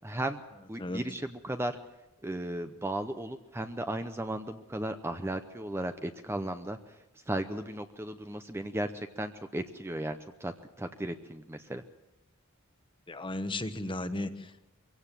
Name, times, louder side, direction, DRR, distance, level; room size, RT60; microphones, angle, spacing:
voice 1, 0.0-0.4 0.7-1.8 2.2-7.0 7.3-11.8, right 1 dB, 10° right, 8 dB, 0.7 m, -35 dB
voice 2, 13.1-14.6, left 1 dB, 25° left, 10 dB, 1.1 m, -35 dB
23.0 x 17.0 x 7.5 m, 1.0 s
head